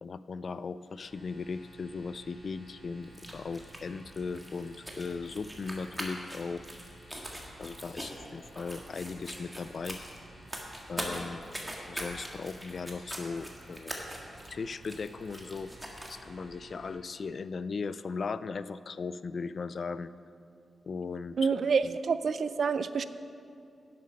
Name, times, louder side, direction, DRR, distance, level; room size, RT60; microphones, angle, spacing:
voice 1, 0.0-6.7 7.6-10.0 10.9-11.4 11.9-14.0 14.5-15.7 16.1-20.1 20.8-21.5 21.8-22.0, left 4 dB, 60° left, 15 dB, 0.3 m, -38 dB
sound 1, 0.9-16.9, right 1 dB, 30° left, 2.9 m, -55 dB
sound 2, 3.0-16.2, equal, 10° right, 1.8 m, -43 dB
voice 2, 21.4-23.0, right 5 dB, 70° right, 14 dB, 0.4 m, -27 dB
10.5 x 8.4 x 5.3 m, 2.6 s
cardioid pair, 60°, 0 cm